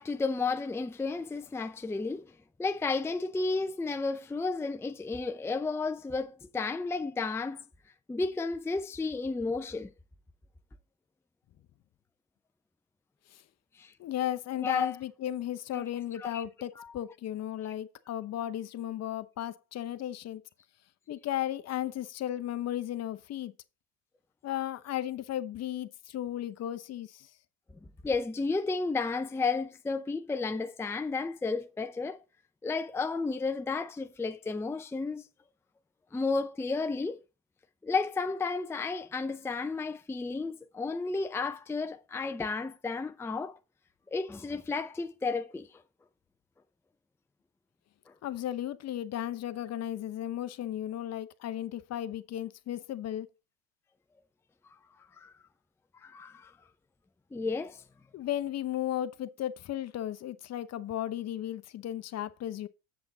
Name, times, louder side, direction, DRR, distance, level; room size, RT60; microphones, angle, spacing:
voice 1, 0.0-2.3 2.6-7.6 8.1-9.9 13.8-13.9 14.6-15.0 15.7-15.8 16.2-16.4 16.8-16.9 28.0-32.2 32.6-35.2 36.1-37.2 37.8-43.6 44.1-45.8 48.1-48.2 55.2-55.3 56.0-56.5 57.3-57.8, left 4 dB, 5° left, 0.6 m, -32 dB
voice 2, 14.0-20.4 21.1-23.5 24.4-27.3 48.2-53.3 58.1-62.7, left 12 dB, 45° left, 0.8 m, -35 dB
7.8 x 7.5 x 4.0 m
hypercardioid pair, 85°, 38 cm